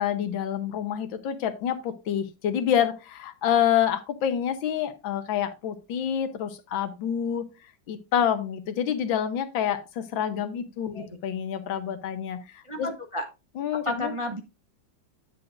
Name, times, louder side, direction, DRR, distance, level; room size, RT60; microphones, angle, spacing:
voice 1, 0.0-7.4 7.9-12.9 13.6-14.1, left 9 dB, 85° left, 10 dB, 1.7 m, -27 dB
voice 2, 12.6-13.3 13.8-14.4, left 1 dB, 35° right, 3 dB, 0.4 m, -31 dB
10.0 x 7.8 x 2.5 m, 0.27 s
omnidirectional pair, 2.1 m